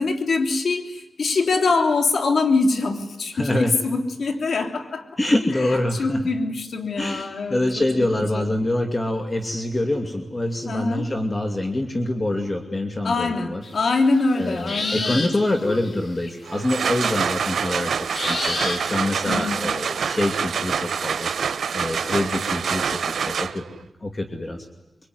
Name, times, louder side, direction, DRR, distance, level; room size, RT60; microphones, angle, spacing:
voice 1, 0.0-5.1 5.6-5.7 6.0-8.1 8.3-8.5 10.6-11.1 13.0-15.3 15.6-15.9 19.3-19.6, left 3 dB, 75° left, 4 dB, 3.3 m, -24 dB
voice 2, 3.3-3.7 5.2-6.2 7.0-13.6 14.3-21.3 21.7-23.6 24.0-24.7, left 1 dB, 30° left, 5 dB, 2.6 m, -25 dB
sound 1, 13.6-16.4 16.7-16.8 17.2-17.3 18.1-19.1, left 3 dB, 55° left, 3.8 m, -30 dB
sound 2, 16.5-23.8, right 6 dB, 80° right, 1.0 m, -26 dB
24.5 x 24.0 x 9.5 m, 0.99 s
cardioid pair, 80°, 0 cm